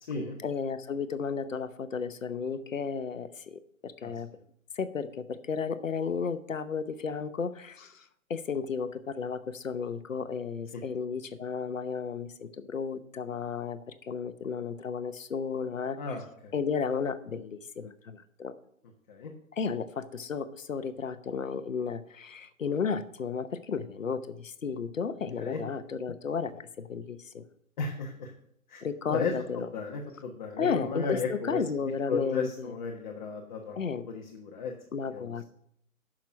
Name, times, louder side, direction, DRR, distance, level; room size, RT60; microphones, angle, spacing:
voice 1, 0.4-4.3 4.7-8.0 8.3-16.0 16.5-18.5 19.5-27.4 28.8-29.7 30.6-32.7 33.8-34.0 34.9-35.4, left 6 dB, 70° left, 12 dB, 1.0 m, -33 dB
voice 2, 16.0-16.5 19.1-19.3 25.4-25.6 27.8-28.3 28.7-28.8 29.1-31.6 32.1-33.8 34.1-34.7 35.1-35.3, left 4 dB, 35° left, 1 dB, 1.3 m, -34 dB
10.5 x 6.3 x 6.3 m, 0.69 s
figure-of-eight pair, 140°, 41 cm